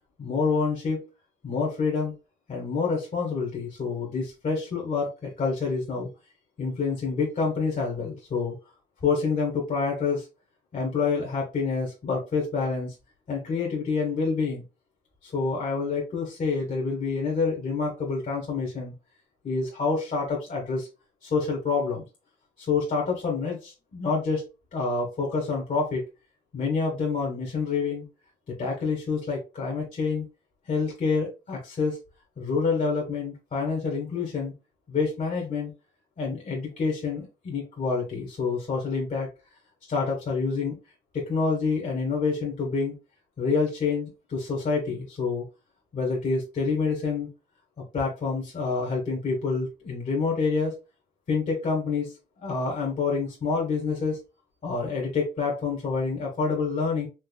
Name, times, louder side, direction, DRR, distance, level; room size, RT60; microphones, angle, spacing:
voice 1, 0.2-1.1 1.4-2.1 2.5-6.1 6.6-8.5 9.0-10.3 10.7-12.9 13.3-14.6 15.2-18.9 19.4-20.9 21.2-22.0 22.6-24.4 24.7-26.0 26.5-28.0 28.5-30.2 30.7-32.0 32.4-34.5 34.9-35.7 36.2-39.3 39.9-40.7 41.1-42.9 43.4-45.4 45.9-47.3 47.9-50.8 51.3-54.2 54.6-57.1, left 4 dB, 40° left, -1 dB, 1.3 m, -27 dB
4.5 x 2.9 x 2.2 m, 0.28 s
cardioid pair, 90°, 20 cm